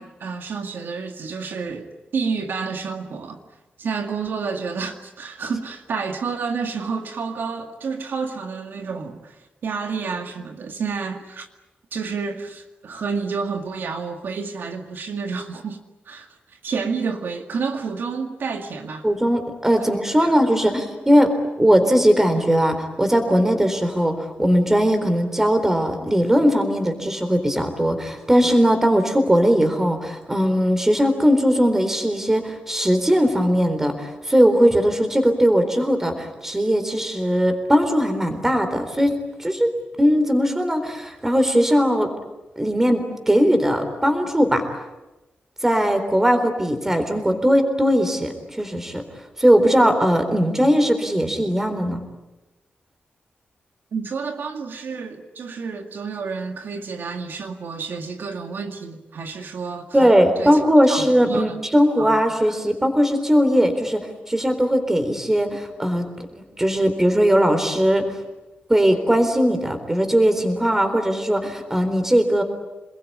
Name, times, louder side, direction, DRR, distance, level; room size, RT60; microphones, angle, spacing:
voice 1, 0.0-3.4 3.8-11.5 11.9-19.1 19.8-19.9 20.2-20.4 53.9-60.0 60.4-60.6 60.9-61.6 62.0-62.2 62.5-62.6, right 5 dB, 65° right, 2.1 m, -30 dB
voice 2, 19.0-39.7 40.0-42.1 42.6-44.6 45.6-49.0 49.4-52.0 59.9-64.0 64.3-66.0 66.4-68.1 68.7-72.4, equal, 10° right, 4.0 m, -19 dB
28.0 x 21.5 x 9.7 m
wide cardioid pair, 150°, 4 cm